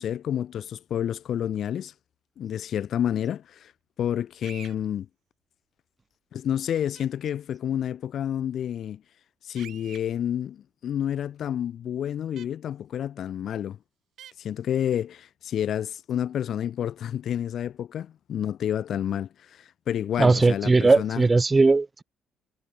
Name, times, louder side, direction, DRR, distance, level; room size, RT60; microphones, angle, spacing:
voice 1, 0.0-1.9 2.4-3.7 4.0-5.1 6.3-9.0 9.4-13.8 14.4-21.3, left 10 dB, 65° left, 1.8 m, -29 dB
sound 1, 4.4-4.7 6.9-7.1 9.6-10.0 12.4-12.5 14.2-14.3, right 11 dB, 70° right, 6.1 m, -45 dB
voice 2, 20.2-22.0, right 3 dB, 25° right, 1.0 m, -19 dB
cardioid pair, 90°, 0 cm